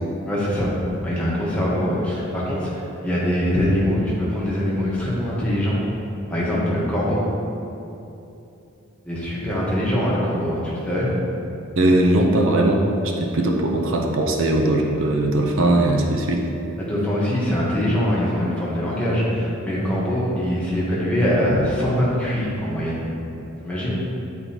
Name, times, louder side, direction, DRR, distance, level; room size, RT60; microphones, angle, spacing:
voice 1, 0.3-0.7 1.0-5.8 6.3-7.2 9.0-11.1 16.8-23.1 23.6-24.0, equal, 5° left, -7 dB, 1.1 m, -23 dB
voice 2, 11.8-12.8 13.2-16.4, right 1 dB, 65° right, 1 dB, 0.5 m, -19 dB
8.9 x 4.2 x 2.8 m, 2.9 s
head